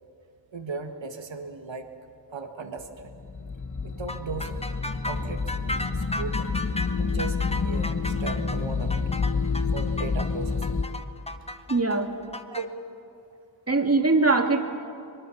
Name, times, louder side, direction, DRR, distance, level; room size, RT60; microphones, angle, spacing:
voice 1, 0.5-1.9 2.3-3.1 3.8-4.6 5.0-5.5 5.9-6.5 7.0-9.1 9.7-10.8 12.5-12.7, right 4 dB, 85° right, 6 dB, 1.7 m, -36 dB
sound 1, 3.1-10.9, left 4 dB, 40° left, 1.4 m, -28 dB
sound 2, 4.1-12.6, left 2 dB, 15° left, 1.0 m, -35 dB
voice 2, 11.7-12.1 13.7-14.6, right 3 dB, 35° right, 4 dB, 2.1 m, -21 dB
23.0 x 22.5 x 7.1 m, 2.4 s
wide cardioid pair, 75°, 44 cm